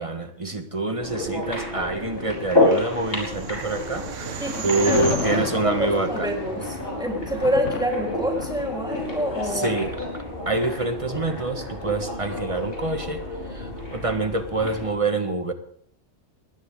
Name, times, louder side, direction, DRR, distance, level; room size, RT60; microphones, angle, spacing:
voice 1, 0.0-6.3 9.5-13.2 13.5-15.5, right 2 dB, 25° right, 8 dB, 1.4 m, -27 dB
sound 1, 1.0-15.0, left 1 dB, 50° left, 4.8 m, -29 dB
sound 2, 2.0-7.4, right 7 dB, 90° right, 1.3 m, -36 dB
Thunder, 4.4-11.6, left 9 dB, 80° left, 1.1 m, -35 dB
voice 2, 4.4-5.4 5.6-9.8, right 1 dB, 5° right, 0 dB, 3.7 m, -27 dB
20.0 x 17.5 x 3.7 m, 0.64 s
omnidirectional pair, 1.3 m